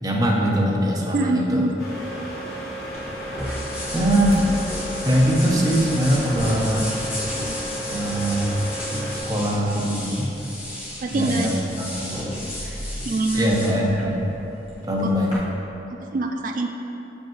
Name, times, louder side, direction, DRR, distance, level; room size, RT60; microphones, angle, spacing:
voice 1, 0.0-1.7 3.9-4.6 5.0-7.0 7.9-8.6 9.1-10.3 11.1-11.5 11.8-12.3 13.3-14.3 14.8-15.5, equal, 20° right, -3 dB, 0.7 m, -22 dB
voice 2, 1.1-1.7 11.0-11.5 13.1-13.6 15.9-16.7, right 2 dB, 45° right, 3 dB, 0.3 m, -24 dB
sound 1, 1.8-9.2, equal, 55° left, 1.2 m, -32 dB
sound 2, 2.9-15.4, left 1 dB, 30° left, 1.5 m, -33 dB
6.4 x 5.3 x 3.1 m, 2.9 s
head